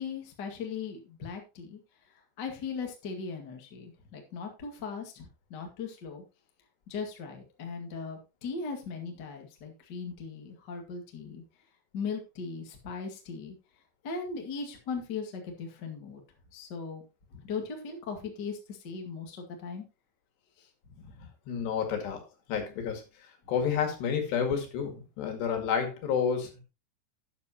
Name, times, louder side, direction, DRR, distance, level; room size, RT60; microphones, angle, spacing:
voice 1, 0.0-1.8 2.4-6.2 6.9-11.4 11.9-13.5 14.0-16.2 16.5-17.0 17.3-19.8 20.6-20.7 21.0-21.3 21.6-21.7, left 5 dB, 45° left, 2 dB, 1.3 m, -38 dB
voice 2, 21.5-22.2 22.5-23.0 23.5-26.6, left 7 dB, 70° left, 5 dB, 4.0 m, -30 dB
12.0 x 9.4 x 2.9 m, 0.27 s
omnidirectional pair, 5.3 m